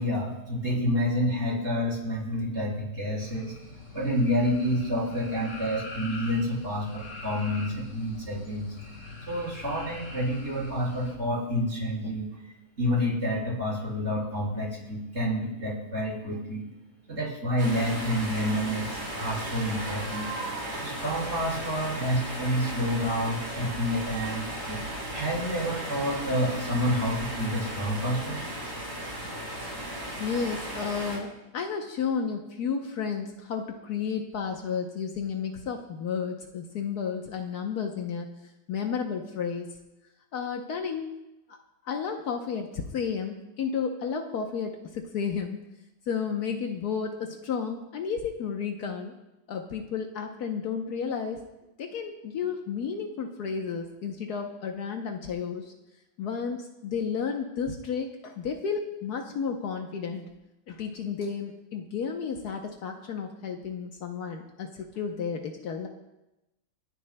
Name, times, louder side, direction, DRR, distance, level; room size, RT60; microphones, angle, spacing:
voice 1, 0.0-3.5 3.9-8.7 9.3-12.3 12.8-16.6 17.1-20.3 20.8-24.8 25.1-28.4, equal, 40° right, -6 dB, 5.2 m, -29 dB
sound 1, 3.2-11.1, left 3 dB, 55° left, 3.3 m, -43 dB
sound 2, 17.6-31.2, right 1 dB, 70° right, 4.0 m, -36 dB
voice 2, 30.2-38.3 38.7-39.7 40.3-41.1 41.5-41.6 41.8-45.6 46.1-49.1 49.5-51.4 51.8-55.7 56.2-60.2 60.7-65.9, left 6 dB, 70° left, 3 dB, 1.4 m, -32 dB
29.0 x 10.5 x 2.2 m, 0.95 s
omnidirectional pair, 1.7 m